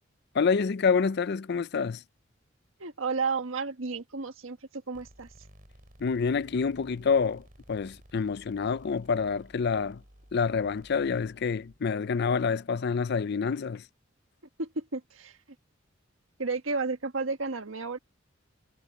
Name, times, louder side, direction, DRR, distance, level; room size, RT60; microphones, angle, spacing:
voice 1, 0.3-2.0 6.0-10.0 10.3-13.8, left 5 dB, 55° left, 0.5 m, -27 dB
voice 2, 2.8-4.6 4.9-5.3 14.6-15.4 16.4-18.0, right 4 dB, 85° right, 1.5 m, -32 dB
sound 1, 4.9-11.8, equal, 45° right, 6.6 m, -55 dB
head